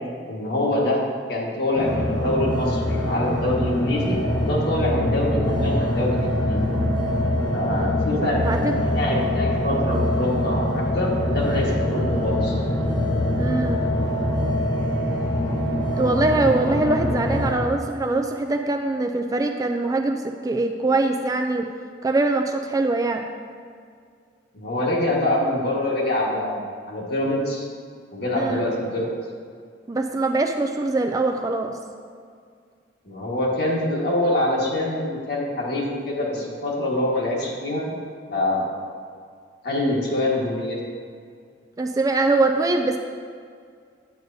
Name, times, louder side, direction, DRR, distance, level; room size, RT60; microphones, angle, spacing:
voice 1, 0.3-1.0 1.3-6.7 7.5-12.6 17.1-17.2 24.5-27.7 28.1-29.1 33.0-38.0 38.3-38.7 39.6-40.8, left 1 dB, 60° left, -3 dB, 1.5 m, -25 dB
sound 1, 1.8-17.5, left 1 dB, 25° left, 0.8 m, -24 dB
voice 2, 8.1-8.7 13.4-13.8 16.0-21.7 22.0-23.3 28.4-28.6 29.9-31.7 41.8-43.0, right 2 dB, 20° right, 4 dB, 0.3 m, -23 dB
9.4 x 7.8 x 2.7 m, 2.1 s
head